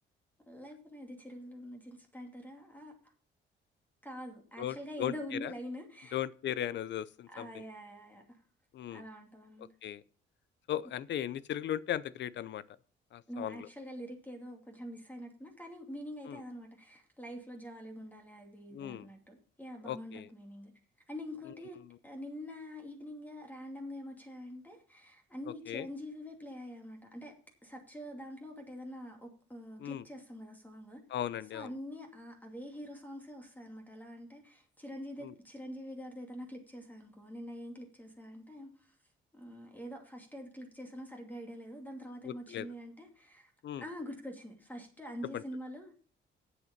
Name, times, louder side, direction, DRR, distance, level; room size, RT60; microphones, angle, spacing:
voice 1, 0.4-2.9 4.0-6.2 7.3-8.4 8.9-9.7 13.3-20.7 21.1-27.3 27.6-31.0 31.5-38.9 39.3-43.5 43.8-45.9, equal, 10° left, 2.7 m, -45 dB
voice 2, 4.6-5.1 5.4-5.5 6.1-7.5 8.7-9.0 9.8-10.0 10.7-12.6 13.1-13.7 16.3-16.4 18.7-19.1 19.8-20.3 25.7-25.9 29.8-30.0 31.1-31.7 35.2-35.3 42.2-42.7 43.6-43.8 45.3-45.4, left 11 dB, 65° left, 0.6 m, -37 dB
8.1 x 8.0 x 7.3 m
cardioid pair, 90°, 20 cm